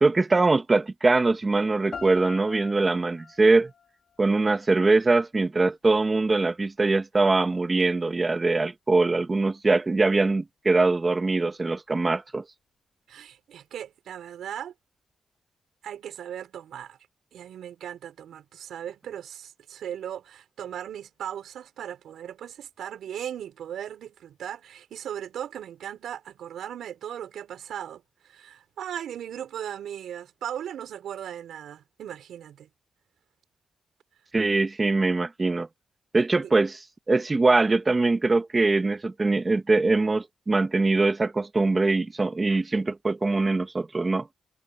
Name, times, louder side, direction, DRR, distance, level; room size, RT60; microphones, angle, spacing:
voice 1, 0.0-3.7 4.2-12.4 34.3-35.7 36.1-36.8 37.1-44.3, right 3 dB, 30° right, 1.7 m, -22 dB
sound 1, 1.9-4.9, left 6 dB, 50° left, 4.3 m, -44 dB
voice 2, 13.1-14.7 15.8-17.0 17.3-32.7 36.4-36.5, right 10 dB, 90° right, 5.4 m, -38 dB
cardioid pair, 90°, 0 cm